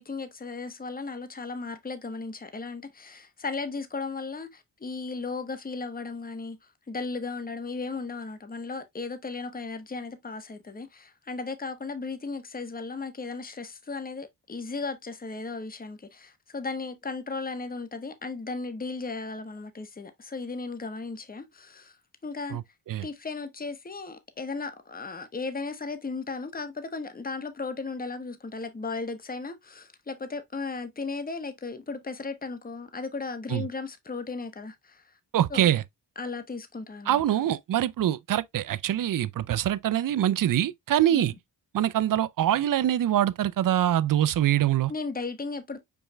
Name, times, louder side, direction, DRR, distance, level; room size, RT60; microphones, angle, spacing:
voice 1, 0.0-6.6 6.9-22.0 22.2-22.6 23.0-35.1 35.5-35.7 36.2-37.4 41.1-41.3 44.9-45.8, left 4 dB, 20° left, 1.0 m, -36 dB
voice 2, 22.5-23.1 33.5-33.6 35.3-35.8 37.1-41.3 41.7-44.9, right 11 dB, 50° right, 0.5 m, -24 dB
5.2 x 4.5 x 2.3 m
cardioid pair, 65°, 42 cm